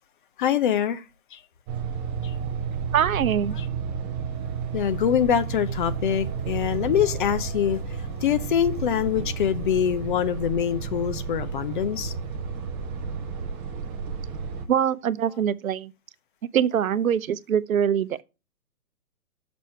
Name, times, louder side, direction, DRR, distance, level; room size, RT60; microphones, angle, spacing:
voice 1, 0.4-1.0 1.3-1.4 2.2-2.3 4.7-7.8 8.2-12.1, left 9 dB, 35° left, 0.7 m, -24 dB
sound 1, 1.7-14.7, right 6 dB, 10° right, 0.5 m, -32 dB
voice 2, 2.9-3.5 14.7-15.9 16.5-18.2, right 9 dB, 70° right, 0.7 m, -23 dB
6.5 x 6.2 x 5.6 m
hypercardioid pair, 135°, 43 cm